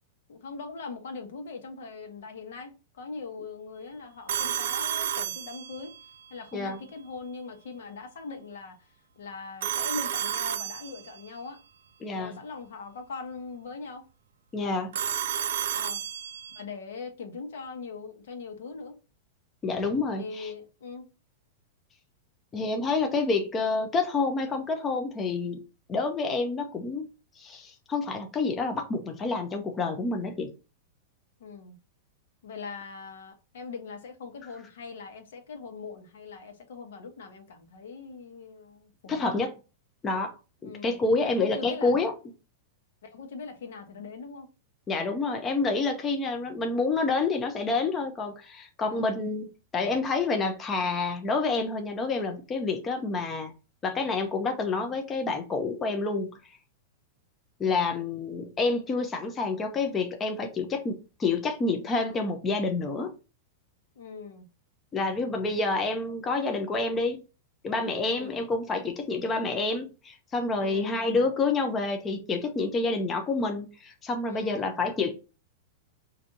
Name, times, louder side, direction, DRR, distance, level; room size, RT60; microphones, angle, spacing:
voice 1, 0.3-6.0 6.3-8.9 9.2-11.6 12.1-14.1 15.7-16.1 16.5-19.0 20.2-21.1 31.4-31.8 32.4-39.2 40.6-41.9 43.0-44.5 48.8-49.2 57.6-57.9 64.0-64.5 68.0-68.4 70.6-71.1 74.3-74.7, left 4 dB, 80° left, 1.0 m, -41 dB
Telephone, 4.3-6.1 9.6-11.3 14.9-16.6, right 10 dB, 75° right, 0.3 m, -31 dB
voice 2, 12.0-12.4 14.5-14.9 19.6-20.5 22.5-25.6 25.9-27.1 27.4-30.5 39.1-39.5 40.0-40.3 40.6-42.1 44.9-53.5 53.8-56.3 57.6-63.1 64.9-67.2 67.6-75.1, left 3 dB, 15° left, 0.4 m, -28 dB
4.8 x 2.5 x 2.7 m
supercardioid pair, 170°, 0 cm